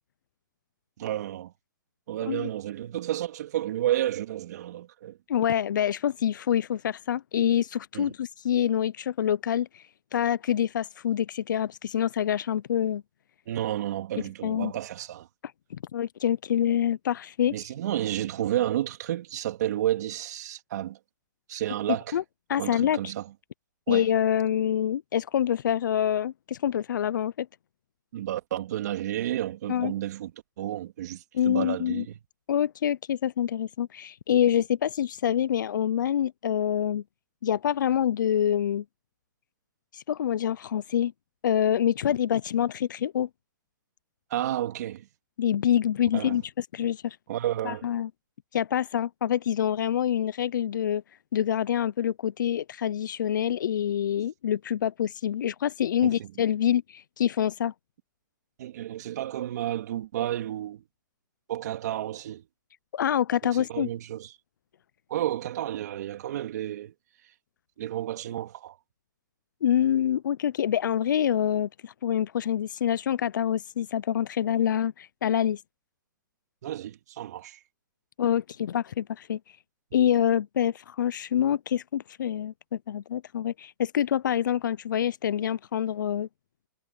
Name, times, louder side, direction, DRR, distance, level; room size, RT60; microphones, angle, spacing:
voice 1, 1.0-1.5 2.1-5.2 7.9-8.1 13.5-15.3 17.5-21.0 21.5-22.2 22.6-23.3 23.9-24.1 28.1-30.3 30.6-32.2 44.3-45.1 46.1-46.4 47.3-47.9 56.0-56.3 58.6-60.8 61.5-62.4 63.4-64.3 65.1-66.9 67.8-68.8 76.6-77.6, right 12 dB, 55° right, 2.9 m, -31 dB
voice 2, 5.3-9.8 10.1-13.0 14.4-14.7 15.7-17.5 22.1-22.2 22.5-23.0 23.9-27.5 29.7-29.9 31.3-32.0 32.5-37.0 37.4-38.8 39.9-41.1 41.4-43.3 45.4-47.2 47.6-48.1 48.5-51.0 51.3-57.7 62.9-63.9 69.6-75.6 78.2-79.4 79.9-86.3, left 10 dB, 75° left, 0.5 m, -26 dB
hypercardioid pair, 150°, 10 cm